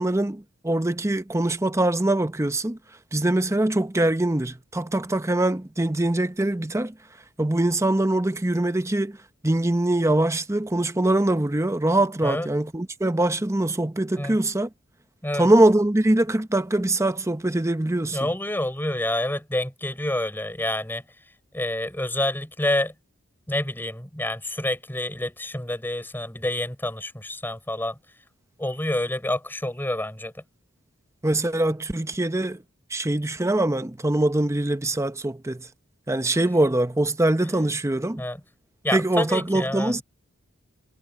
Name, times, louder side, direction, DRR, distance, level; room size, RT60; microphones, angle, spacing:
voice 1, 0.0-2.8 3.1-6.9 7.4-9.2 9.4-14.7 15.3-18.3 31.2-32.6 32.9-35.7 36.1-38.2 38.9-40.0, right 1 dB, 15° right, 0.8 m, -23 dB
voice 2, 18.1-21.0 21.5-22.9 23.5-28.0 28.6-30.3 38.2-38.4 38.8-40.0, left 1 dB, 10° left, 4.7 m, -28 dB
head